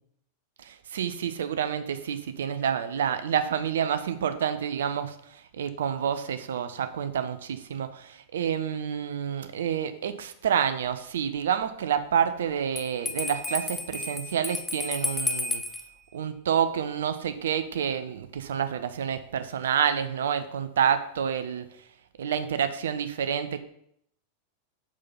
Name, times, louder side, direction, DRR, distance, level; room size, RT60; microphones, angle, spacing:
voice 1, 0.6-15.6 16.1-21.6 22.2-23.6, right 8 dB, 60° right, 10 dB, 0.5 m, -28 dB
Bell, 12.8-15.9, left 3 dB, 15° left, 0.5 m, -32 dB
5.1 x 4.0 x 5.6 m, 0.71 s
figure-of-eight pair, 90°, 0 cm